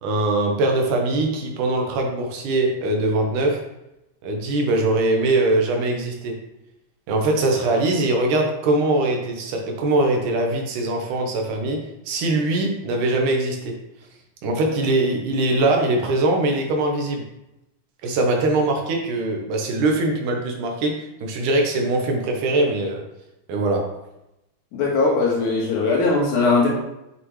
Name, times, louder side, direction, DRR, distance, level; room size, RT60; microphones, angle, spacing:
voice 1, 0.0-3.6 4.2-6.4 7.1-13.8 14.4-17.2 18.0-23.0 23.5-23.9, right 2 dB, 85° right, 2 dB, 2.6 m, -22 dB
voice 2, 24.7-26.7, left 3 dB, 80° left, -3 dB, 3.2 m, -19 dB
7.6 x 6.2 x 3.2 m, 0.90 s
omnidirectional pair, 3.5 m